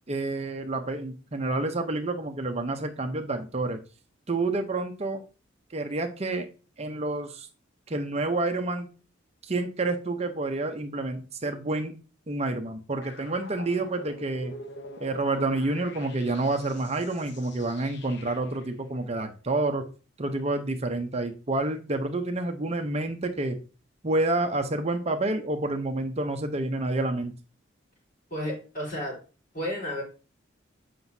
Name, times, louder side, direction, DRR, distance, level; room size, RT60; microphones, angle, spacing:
voice 1, 0.1-3.8 4.3-5.2 5.7-6.5 6.8-7.5 7.9-8.9 9.4-11.9 12.3-14.5 15.0-19.8 20.2-23.6 24.0-27.3, right 2 dB, 30° right, 6 dB, 0.7 m, -29 dB
sound 1, 13.0-18.7, left 2 dB, 60° left, 0.9 m, -45 dB
voice 2, 28.3-29.2 29.5-30.0, equal, 45° left, -4 dB, 4.1 m, -32 dB
7.6 x 5.9 x 2.7 m, 0.35 s
head